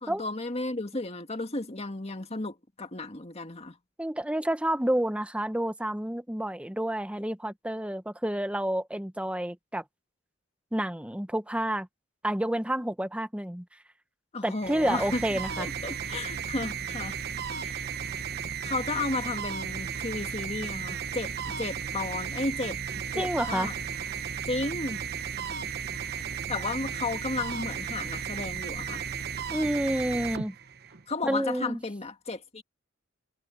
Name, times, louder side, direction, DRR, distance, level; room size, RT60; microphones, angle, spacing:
voice 1, 0.0-3.8 14.3-15.2 15.6-17.2 17.6-17.9 18.6-21.3 21.6-23.7 24.5-25.0 26.5-29.0 31.1-32.6, left 2 dB, 30° left, 1.9 m, -33 dB
voice 2, 4.0-9.8 10.7-11.9 12.2-13.6 14.4-15.7 23.2-23.7 29.5-30.5 31.3-31.8, right 1 dB, 5° right, 0.9 m, -29 dB
sound 1, 14.5-31.0, right 7 dB, 55° right, 1.0 m, -35 dB
head